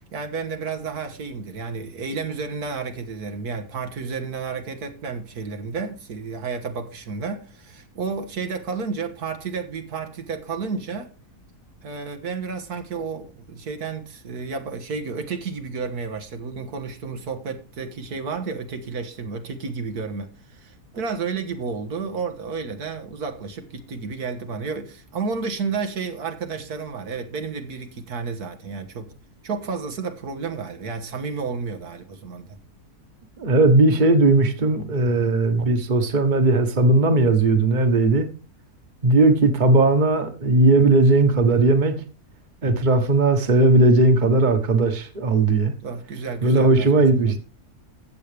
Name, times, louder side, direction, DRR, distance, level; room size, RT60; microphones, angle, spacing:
voice 1, 0.1-11.1 11.8-29.1 29.4-32.6 45.8-47.4, right 5 dB, 80° right, 2.0 m, -31 dB
voice 2, 33.4-38.3 39.0-41.9 42.6-45.7 46.4-47.4, right 2 dB, 30° right, 1.4 m, -17 dB
15.0 x 8.4 x 3.4 m
omnidirectional pair, 1.6 m